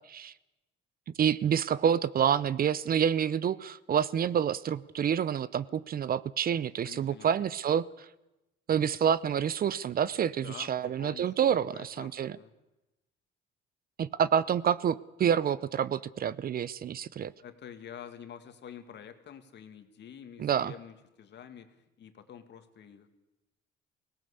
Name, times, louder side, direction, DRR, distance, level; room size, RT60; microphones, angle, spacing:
voice 1, 1.2-7.9 8.7-12.4 14.0-17.3 20.4-20.7, right 8 dB, 45° right, 19 dB, 0.6 m, -28 dB
voice 2, 6.8-7.5 10.4-12.5 17.4-23.1, left 8 dB, 60° left, 8 dB, 2.0 m, -48 dB
19.0 x 18.0 x 8.3 m, 0.97 s
cardioid pair, 90°, 21 cm